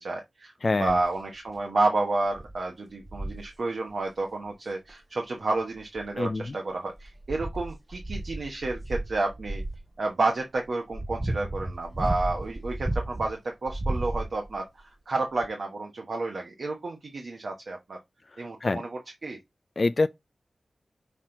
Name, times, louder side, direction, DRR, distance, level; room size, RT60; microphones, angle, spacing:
voice 1, 0.0-0.5 0.8-9.6 10.0-18.0 18.4-19.4, right 2 dB, 75° right, 1.1 m, -30 dB
voice 2, 0.6-1.0 6.2-6.5 18.6-18.8 19.8-20.1, left 3 dB, 55° left, 0.3 m, -25 dB
sound 1, 0.9-1.2 1.8-1.9 2.3-2.6 3.0-3.5 4.9-5.0 5.8-6.5 7.0-9.8 10.6-13.3 13.7-14.6 15.4-15.5, right 1 dB, 20° right, 0.8 m, -33 dB
5.8 x 4.3 x 3.8 m
cardioid pair, 45°, 0 cm